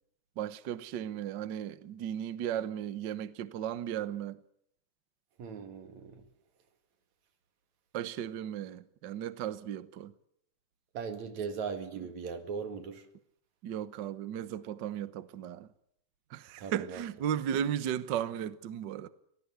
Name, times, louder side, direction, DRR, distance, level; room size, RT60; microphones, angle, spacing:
voice 1, 0.4-4.4 7.9-10.1 13.6-15.7 16.3-19.1, right 10 dB, 85° right, 0.9 m, -35 dB
voice 2, 5.4-6.2 10.9-13.0 16.6-17.0, right 6 dB, 65° right, 3.4 m, -39 dB
24.5 x 18.0 x 8.1 m
omnidirectional pair, 3.6 m